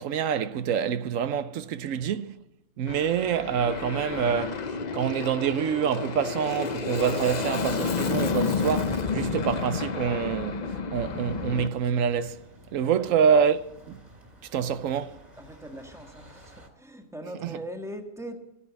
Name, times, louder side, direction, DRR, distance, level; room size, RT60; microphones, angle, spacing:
voice 1, 0.0-2.3 2.8-4.7 4.9-12.4 12.7-13.6 13.9-14.0 14.5-15.2 17.4-17.5, right 7 dB, 85° right, 1.1 m, -26 dB
Aircraft, 2.9-11.7, left 5 dB, 40° left, 0.8 m, -30 dB
sound 1, 11.0-16.7, equal, 30° right, 2.3 m, -52 dB
voice 2, 15.4-18.4, equal, ahead, 1.6 m, -41 dB
14.5 x 9.8 x 8.2 m
omnidirectional pair, 1.3 m